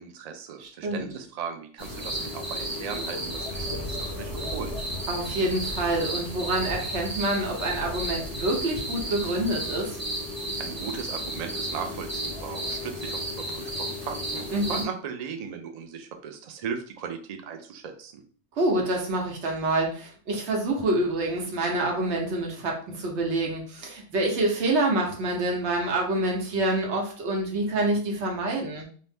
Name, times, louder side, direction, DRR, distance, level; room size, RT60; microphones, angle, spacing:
voice 1, 0.0-4.9 10.6-13.2 13.5-14.4 14.7-18.1, right 6 dB, 60° right, 6 dB, 0.4 m, -37 dB
voice 2, 0.6-1.1 5.1-10.0 14.5-14.8 18.5-28.8, right 2 dB, 80° right, 0 dB, 1.1 m, -27 dB
sound 1, 1.8-14.8, equal, 20° right, 1.0 m, -33 dB
2.7 x 2.0 x 3.3 m, 0.43 s
omnidirectional pair, 1.1 m